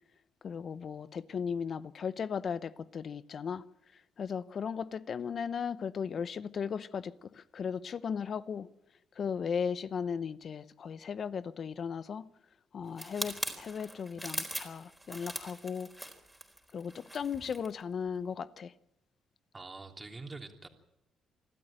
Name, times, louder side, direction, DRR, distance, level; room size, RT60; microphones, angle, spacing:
voice 1, 0.4-3.6 4.2-8.7 9.2-12.3 12.7-15.9 16.7-18.7, left 6 dB, 50° left, 0.7 m, -36 dB
sound 1, 13.0-17.7 18.1-18.3, right 1 dB, 5° right, 4.1 m, -41 dB
voice 2, 19.5-20.7, right 3 dB, 25° right, 3.2 m, -45 dB
26.5 x 12.5 x 8.9 m
cardioid pair, 90°, 0 cm